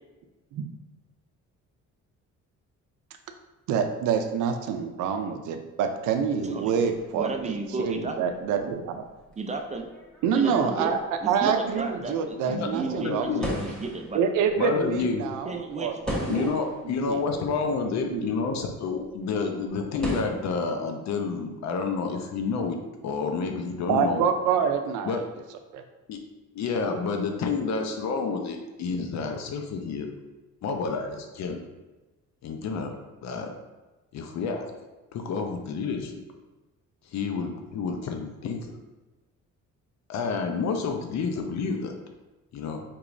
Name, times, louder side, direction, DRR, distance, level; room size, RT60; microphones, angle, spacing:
voice 1, 3.7-9.0 10.2-11.0 11.3-13.4 14.1-15.9 16.2-16.5 17.0-17.2 17.8-18.3 23.9-25.2 25.7-25.8, right 7 dB, 85° right, 6 dB, 0.5 m, -26 dB
voice 2, 6.4-6.7 7.1-8.2 9.4-9.9 10.3-10.9 11.2-14.2 15.5-16.5, right 3 dB, 25° right, 4 dB, 0.4 m, -33 dB
sound 1, 6.9-20.2, left 1 dB, 5° left, 1.2 m, -39 dB
voice 3, 12.4-13.5 14.5-15.2 16.3-24.2 25.0-25.2 26.1-26.2 26.5-30.1 30.6-31.6 32.4-33.5 34.1-34.7 35.1-36.2 37.0-38.8 40.1-41.9 42.5-42.8, left 4 dB, 65° left, 4 dB, 0.6 m, -29 dB
4.6 x 2.9 x 2.6 m, 1.1 s
cardioid pair, 90°, 30 cm